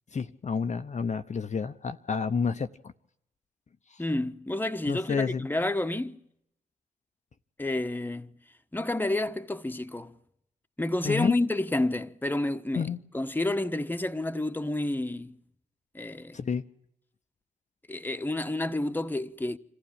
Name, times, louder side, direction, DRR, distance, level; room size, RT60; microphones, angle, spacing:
voice 1, 0.1-2.7 3.9-4.0 4.9-5.5 7.7-7.8 11.0-11.4 12.8-13.0 16.3-16.6, left 5 dB, 45° left, 0.9 m, -29 dB
voice 2, 4.0-6.2 7.6-8.4 8.7-10.1 10.8-15.4 15.9-16.4 17.9-19.6, left 2 dB, 10° left, 1.3 m, -30 dB
26.0 x 15.0 x 8.9 m
hypercardioid pair, 45°, 17 cm